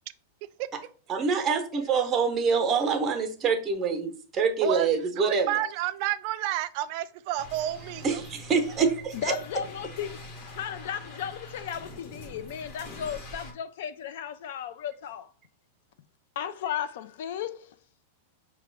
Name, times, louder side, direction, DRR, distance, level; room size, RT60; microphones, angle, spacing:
voice 1, 1.1-5.5 8.0-9.3, right 5 dB, 20° right, 0.7 m, -25 dB
voice 2, 5.2-8.2, right 13 dB, 50° right, 0.3 m, -30 dB
sound 1, 7.4-13.5, left 1 dB, 45° left, 1.0 m, -44 dB
voice 3, 9.1-10.2 10.6-15.3 16.4-17.8, left 9 dB, 70° left, 0.3 m, -35 dB
4.8 x 2.2 x 3.4 m
supercardioid pair, 140°, 0 cm